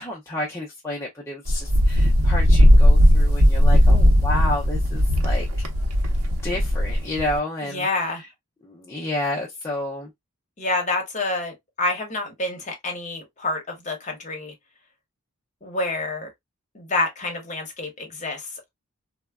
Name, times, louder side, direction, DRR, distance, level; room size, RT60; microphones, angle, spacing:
voice 1, 0.0-5.4 6.4-7.9 8.6-10.1, left 1 dB, 10° left, 0.4 m, -30 dB
Wind, 1.5-7.4, equal, 85° right, 0.6 m, -17 dB
voice 2, 7.6-8.2 10.6-14.5 15.6-16.3 16.7-18.7, left 2 dB, 30° left, 0.8 m, -28 dB
3.2 x 2.1 x 2.2 m
head